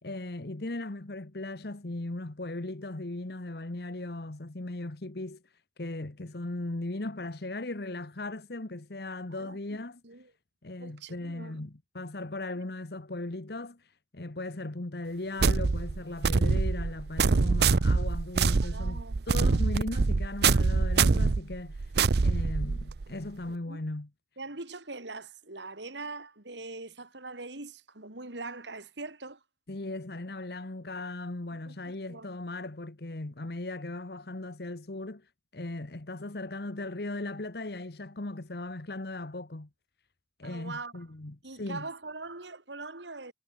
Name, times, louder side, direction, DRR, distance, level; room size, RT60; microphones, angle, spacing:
voice 1, 0.0-5.4 5.8-10.0 10.6-13.8 14.1-21.9 22.2-24.1 29.7-35.2 35.5-39.7 40.4-41.9, left 2 dB, 60° left, 1.2 m, -38 dB
voice 2, 9.4-10.3 10.8-11.6 18.5-19.2 21.9-22.1 23.5-23.8 24.4-29.4 31.5-32.3 40.4-41.0 41.4-43.3, right 3 dB, 80° right, 3.4 m, -42 dB
sound 1, 15.4-23.1, right 4 dB, 60° right, 0.6 m, -25 dB
head